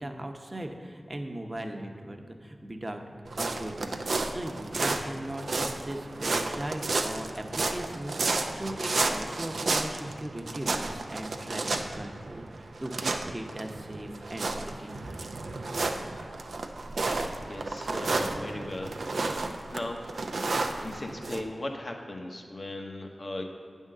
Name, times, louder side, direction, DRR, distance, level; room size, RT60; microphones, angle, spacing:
voice 1, 0.0-3.0 3.4-15.3, right 1 dB, 30° right, 4 dB, 0.8 m, -38 dB
sound 1, 3.3-21.4, right 3 dB, 80° right, 0.4 m, -32 dB
voice 2, 17.5-19.1 19.7-20.0 20.8-23.4, left 1 dB, 55° left, 2 dB, 0.9 m, -37 dB
8.9 x 3.7 x 6.6 m, 2.2 s
cardioid pair, 40°, 0 cm